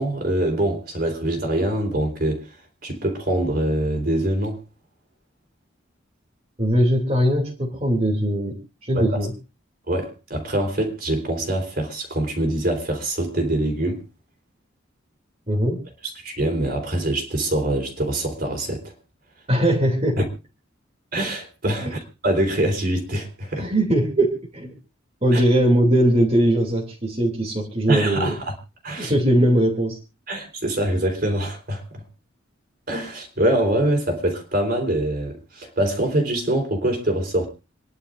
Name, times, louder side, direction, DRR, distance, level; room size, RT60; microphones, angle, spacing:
voice 1, 0.0-2.6 2.8-4.6 8.9-9.3 9.9-14.0 16.2-18.9 20.2-20.3 21.1-23.7 25.3-25.4 27.9-28.5 28.8-29.1 30.3-32.0 32.9-37.5, right 1 dB, 50° right, 3.9 m, -24 dB
voice 2, 6.6-9.3 15.5-15.8 19.5-20.2 21.8-21.9 23.5-24.8 25.2-28.3 29.0-30.0, right 1 dB, 30° right, 2.7 m, -20 dB
27.5 x 11.0 x 2.6 m
head